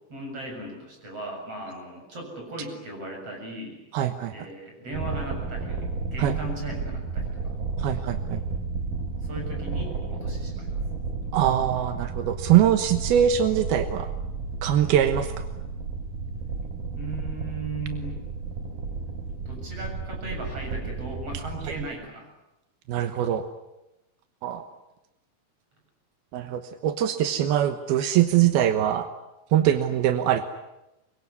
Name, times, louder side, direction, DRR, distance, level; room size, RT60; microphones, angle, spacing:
voice 1, 0.1-3.8 4.3-7.5 9.2-10.8 16.9-18.2 19.5-22.3, right 2 dB, 40° right, 2 dB, 8.2 m, -37 dB
voice 2, 3.9-4.3 6.2-6.3 7.8-8.4 11.3-14.1 14.6-15.4 22.9-23.4 24.4-24.6 26.3-29.1 29.5-30.4, right 10 dB, 85° right, 9 dB, 3.1 m, -22 dB
sound 1, 4.9-21.9, right 4 dB, 70° right, 5.1 m, -32 dB
24.5 x 23.0 x 9.8 m, 0.93 s
omnidirectional pair, 4.3 m